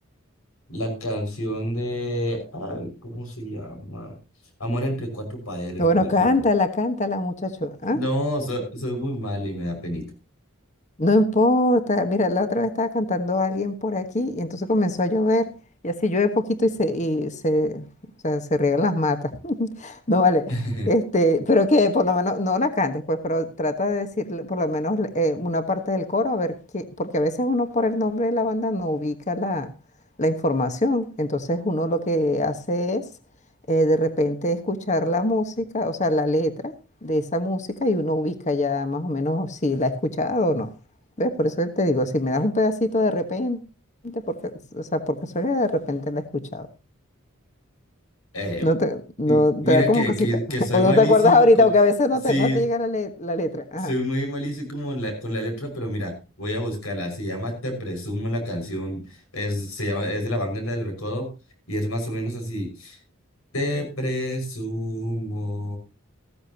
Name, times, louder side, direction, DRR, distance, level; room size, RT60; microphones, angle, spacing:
voice 1, 0.7-4.1 4.6-6.5 7.9-10.1 20.5-20.9 48.3-48.7 49.3-51.7 52.3-52.6 53.8-61.3 61.7-63.0 63.5-65.8, equal, 85° left, 4 dB, 5.8 m, -28 dB
voice 2, 5.8-8.0 11.0-15.5 15.8-17.8 18.2-20.5 20.9-29.7 30.2-33.1 33.7-36.7 37.0-40.7 41.2-43.6 44.0-46.7 48.6-50.4 50.7-53.9, left 1 dB, 35° left, 9 dB, 1.3 m, -22 dB
15.0 x 14.0 x 2.9 m, 0.31 s
head